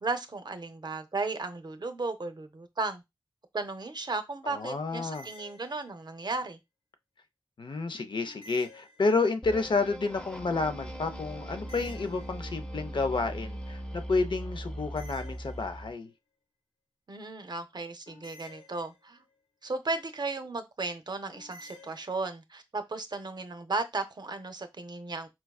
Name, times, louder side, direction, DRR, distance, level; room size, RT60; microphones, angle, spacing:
voice 1, 0.0-3.0 3.5-6.6 17.1-19.2 19.6-25.3, right 3 dB, 50° right, 0.5 m, -35 dB
voice 2, 4.4-5.3 7.6-16.1, left 3 dB, 60° left, 0.5 m, -30 dB
sound 1, 5.0-6.3 8.2-9.5 11.5-12.8 14.8-16.1 18.1-19.4 21.3-22.3, left 2 dB, 80° left, 1.4 m, -53 dB
sound 2, 9.4-16.0, equal, 10° left, 0.6 m, -40 dB
4.5 x 2.3 x 2.3 m
cardioid pair, 45°, 9 cm